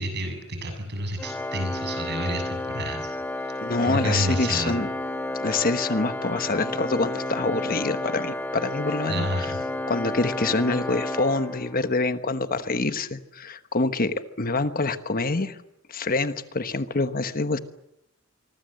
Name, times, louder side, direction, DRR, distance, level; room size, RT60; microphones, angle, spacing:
voice 1, 0.0-3.1 3.8-4.8 5.5-5.6 9.1-9.6, right 1 dB, 55° right, 6 dB, 7.4 m, -29 dB
Organ, 1.2-12.0, left 2 dB, 10° left, 2.1 m, -31 dB
voice 2, 3.6-4.9 5.3-9.5 9.9-15.6 15.9-17.6, left 3 dB, 45° left, 11 dB, 1.2 m, -26 dB
26.0 x 24.5 x 7.9 m, 0.82 s
head